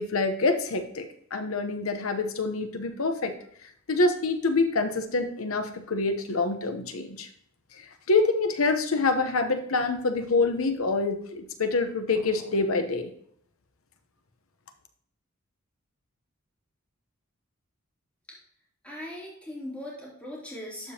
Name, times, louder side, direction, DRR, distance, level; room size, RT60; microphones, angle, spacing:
voice 1, 0.0-3.3 3.9-7.3 8.1-13.1, left 3 dB, 80° left, 8 dB, 0.9 m, -26 dB
voice 2, 18.8-20.9, left 1 dB, 5° left, -6 dB, 2.9 m, -39 dB
12.0 x 5.2 x 2.9 m, 0.65 s
head